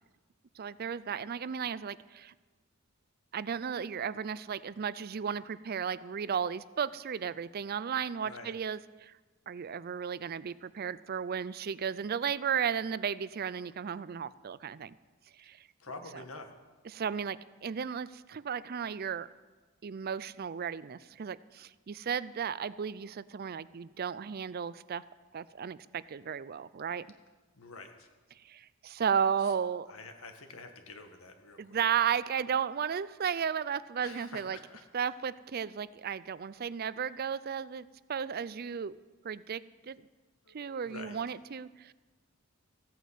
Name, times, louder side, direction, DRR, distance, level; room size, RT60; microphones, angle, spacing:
voice 1, 0.6-2.3 3.3-9.1 9.5-14.9 15.4-15.7 16.1-16.2 16.9-19.3 19.8-25.0 25.3-27.1 28.4-29.9 31.6-34.6 34.9-39.0 39.2-40.0 40.5-41.9, right 7 dB, 45° right, 18 dB, 0.4 m, -34 dB
voice 2, 15.8-16.5 27.6-28.1 29.9-31.8 34.0-34.8 40.5-40.6 40.9-41.2, left 3 dB, 85° left, 6 dB, 1.7 m, -47 dB
15.0 x 9.3 x 8.2 m, 1.3 s
head